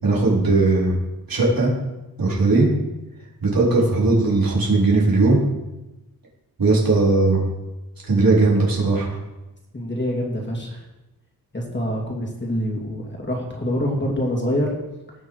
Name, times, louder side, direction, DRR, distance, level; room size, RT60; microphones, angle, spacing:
voice 1, 0.0-1.0 1.3-1.7 2.2-2.7 3.4-5.4 6.6-7.4 8.0-9.1, right 3 dB, 65° right, -4 dB, 4.1 m, -18 dB
voice 2, 9.7-10.9 11.5-14.7, equal, 30° left, -1 dB, 2.9 m, -25 dB
17.5 x 6.8 x 4.9 m, 1.0 s
wide cardioid pair, 105°, 37 cm